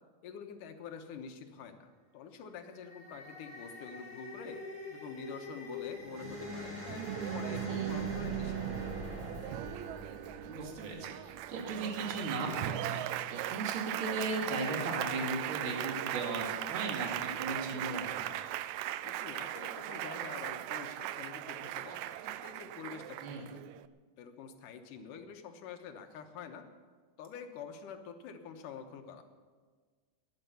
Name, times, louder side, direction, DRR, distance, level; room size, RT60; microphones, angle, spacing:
voice 1, 0.2-4.6 4.9-9.1 13.3-13.5 19.0-23.6 24.2-26.7 27.2-29.2, left 6 dB, 85° left, 6 dB, 2.7 m, -47 dB
sound 1, 2.6-11.9, left 1 dB, 25° right, 4.5 m, -44 dB
Applause, 6.9-23.9, right 14 dB, 80° right, 1.7 m, -38 dB
voice 2, 7.7-8.0 10.5-18.4 23.2-23.5, right 2 dB, 40° right, 0 dB, 2.9 m, -37 dB
21.5 x 8.6 x 6.8 m, 1.5 s
omnidirectional pair, 3.6 m